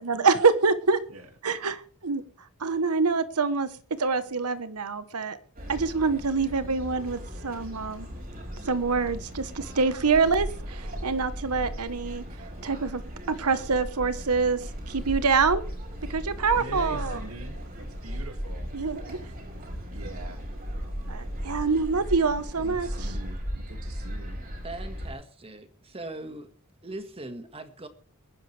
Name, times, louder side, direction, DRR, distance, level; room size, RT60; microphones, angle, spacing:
voice 1, 0.0-1.0 1.4-2.2 2.6-3.7 4.0-5.4 5.7-8.1 8.6-12.2 12.6-13.0 13.3-14.6 14.9-15.6 16.1-17.2 18.7-19.2 21.1-22.9, right 4 dB, 85° right, 13 dB, 1.1 m, -25 dB
sound 1, 5.6-25.1, equal, 40° right, 5.8 m, -36 dB
voice 2, 16.6-18.7 19.9-20.4 22.6-24.4, right 2 dB, 65° right, 6 dB, 2.3 m, -43 dB
voice 3, 24.6-26.5 26.8-27.9, right 2 dB, 25° right, 8 dB, 1.7 m, -40 dB
23.0 x 10.5 x 3.3 m, 0.42 s
head